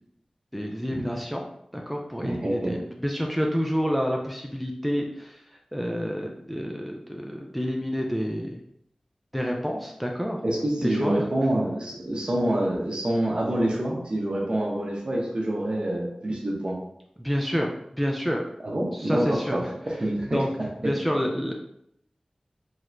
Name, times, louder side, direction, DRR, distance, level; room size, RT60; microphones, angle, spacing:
voice 1, 0.5-1.4 1.7-5.3 5.7-8.6 9.3-10.4 10.8-11.1 17.2-17.7 17.9-18.4 18.9-19.7 20.3-20.5 20.8-21.5, equal, ahead, 0 dB, 0.4 m, -28 dB
voice 2, 2.2-2.7 10.4-16.8 18.6-20.4 20.8-20.9, right 1 dB, 50° right, -2 dB, 0.8 m, -26 dB
3.2 x 2.8 x 2.5 m, 0.75 s
wide cardioid pair, 55°, 2 cm